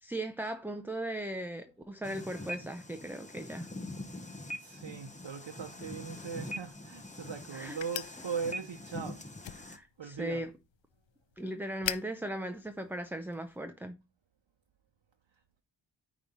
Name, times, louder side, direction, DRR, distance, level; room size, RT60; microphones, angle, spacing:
voice 1, 0.0-3.7 7.5-7.8 9.5-10.5 11.4-14.0, right 1 dB, 5° right, 0.5 m, -38 dB
sound 1, 2.0-9.8, left 1 dB, 15° left, 0.9 m, -43 dB
voice 2, 4.6-9.2 10.0-10.5, right 6 dB, 70° right, 0.9 m, -39 dB
sound 2, 7.7-13.6, left 10 dB, 80° left, 0.6 m, -45 dB
9.2 x 3.1 x 5.4 m
wide cardioid pair, 80°, 45 cm